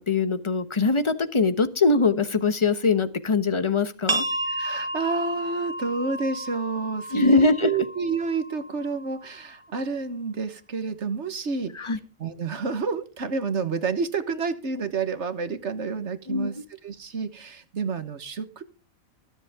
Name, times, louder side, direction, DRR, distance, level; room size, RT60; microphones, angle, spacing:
voice 1, 0.0-4.2 7.1-7.7 11.8-12.0 16.3-16.5, left 3 dB, 25° left, 12 dB, 1.0 m, -22 dB
sound 1, 4.1-9.5, right 1 dB, 20° right, 1.8 m, -32 dB
voice 2, 4.5-11.9 12.2-16.6 16.8-18.6, right 4 dB, 55° right, 11 dB, 1.5 m, -29 dB
23.0 x 7.9 x 3.6 m, 0.34 s
omnidirectional pair, 1.4 m